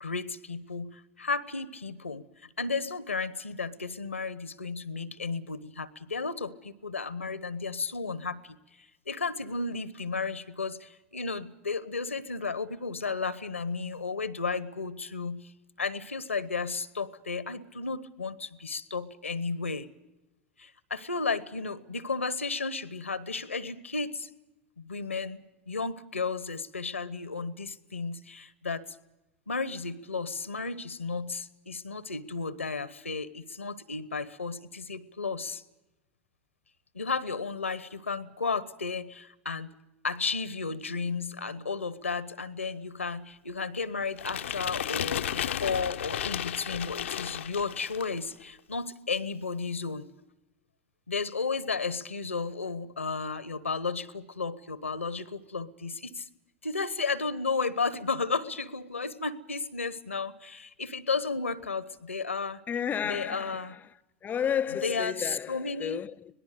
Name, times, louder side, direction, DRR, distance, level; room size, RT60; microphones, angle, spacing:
voice 1, 0.0-2.2 2.6-15.5 15.8-19.9 20.6-24.3 24.8-29.0 29.5-35.6 36.9-39.7 40.0-50.1 51.1-56.3 56.6-62.6 63.0-63.7 64.8-66.0, left 4 dB, 90° left, 1.0 m, -33 dB
sound 1, 44.2-48.2, left 10 dB, 75° left, 0.7 m, -33 dB
voice 2, 62.7-63.9 64.2-66.3, left 8 dB, 25° left, 0.7 m, -32 dB
25.0 x 18.5 x 6.7 m
figure-of-eight pair, 90°, 7 cm